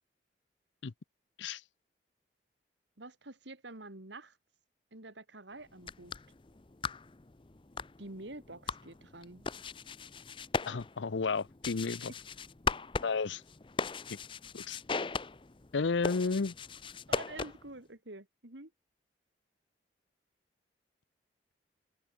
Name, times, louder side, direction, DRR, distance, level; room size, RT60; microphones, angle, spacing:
voice 1, 3.0-4.4 4.9-6.2 8.0-9.5 17.1-18.7, right 2 dB, 85° right, 2.8 m, -47 dB
sound 1, 5.7-17.8, left 4 dB, 25° left, 0.6 m, -39 dB
voice 2, 10.6-12.1 13.0-13.4 14.5-14.8 15.7-16.5, left 4 dB, 90° left, 0.6 m, -32 dB
head